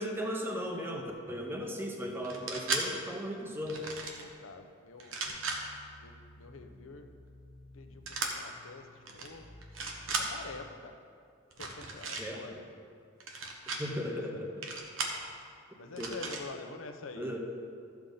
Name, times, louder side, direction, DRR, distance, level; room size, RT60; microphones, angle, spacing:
voice 1, 0.0-3.8 12.2-12.6 13.7-14.6 16.0-16.1 17.2-17.4, equal, 10° right, 1 dB, 0.9 m, -37 dB
sound 1, 2.2-2.8 3.7-4.2 5.0-5.6 8.1-8.3 9.0-9.3 9.6-10.3 11.5-12.2 13.2-13.8 14.6-15.2 16.0-16.4, right 4 dB, 80° right, 1.1 m, -35 dB
voice 2, 4.2-5.2 6.0-7.1 7.7-9.6 10.1-11.0 11.6-12.6 13.9-14.8 15.8-17.4, left 3 dB, 90° left, 7 dB, 0.8 m, -47 dB
sound 2, 5.3-10.6, left 1 dB, 55° left, 1.0 m, -54 dB
13.0 x 7.1 x 3.9 m, 2.3 s
head